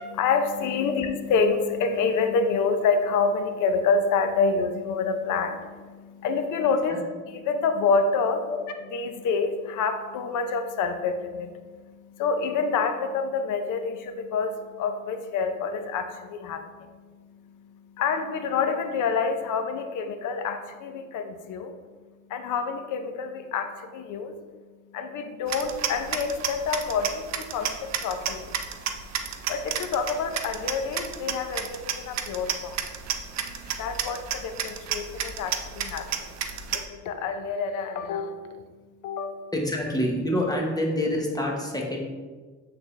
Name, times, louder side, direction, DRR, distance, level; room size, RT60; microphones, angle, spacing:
voice 1, 0.2-7.0 7.3-8.5 8.9-21.7 22.3-24.3 24.9-28.5 29.5-32.8 33.6-36.3 36.7-38.6 39.0-39.4, left 5 dB, 85° left, 7 dB, 0.7 m, -27 dB
sound 1, 25.5-36.8, right 8 dB, 60° right, 0.6 m, -32 dB
voice 2, 39.5-42.0, left 1 dB, 10° left, -1 dB, 1.3 m, -27 dB
8.2 x 3.8 x 3.3 m, 1.4 s
cardioid pair, 90°, 30 cm